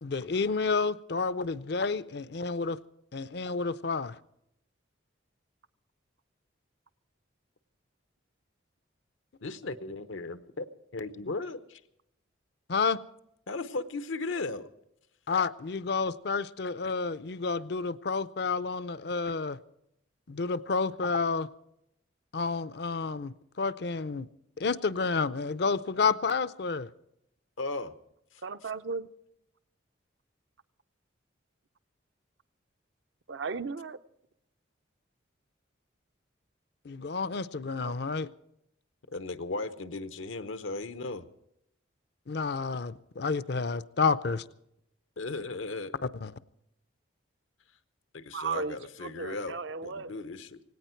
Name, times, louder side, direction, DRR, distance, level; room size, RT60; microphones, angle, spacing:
voice 1, 0.0-2.8 3.1-4.1 12.7-13.0 15.3-19.6 20.3-21.5 22.3-24.3 24.6-26.9 36.9-38.3 42.3-44.4 46.2-46.3, left 4 dB, 55° left, 16 dB, 0.5 m, -30 dB
voice 2, 9.4-10.7 10.9-11.8 13.5-14.7 27.6-27.9 28.3-28.4 39.1-41.3 45.2-45.9 48.1-49.6 49.8-50.6, left 3 dB, 85° left, 12 dB, 0.9 m, -36 dB
voice 3, 28.4-29.1 33.3-34.0 37.8-38.0 48.3-50.1, right 5 dB, 70° right, 11 dB, 0.6 m, -35 dB
18.0 x 17.5 x 4.5 m, 0.81 s
head